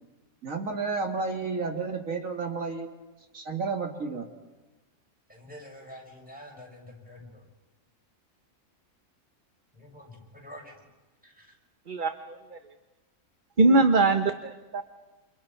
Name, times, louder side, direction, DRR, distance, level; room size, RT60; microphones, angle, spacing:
voice 1, 0.4-2.9 3.3-4.3, right 4 dB, 70° right, 4 dB, 2.4 m, -31 dB
voice 2, 5.3-7.5 9.7-10.9 11.2-11.5, left 1 dB, 5° right, 0 dB, 6.6 m, -47 dB
voice 3, 11.9-12.6 13.6-14.8, right 3 dB, 40° right, 7 dB, 1.2 m, -22 dB
29.5 x 28.0 x 5.9 m, 1.1 s
omnidirectional pair, 1.5 m